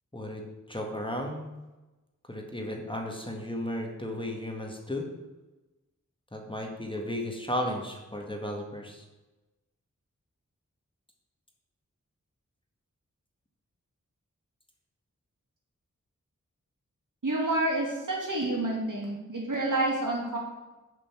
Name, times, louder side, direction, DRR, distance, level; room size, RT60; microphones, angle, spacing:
voice 1, 0.7-1.4 2.3-5.1 6.3-9.0, left 1 dB, 15° left, 1 dB, 1.6 m, -34 dB
voice 2, 17.2-20.4, right 2 dB, 80° right, -3 dB, 2.5 m, -29 dB
7.0 x 5.4 x 7.1 m, 1.1 s
wide cardioid pair, 45°, 31 cm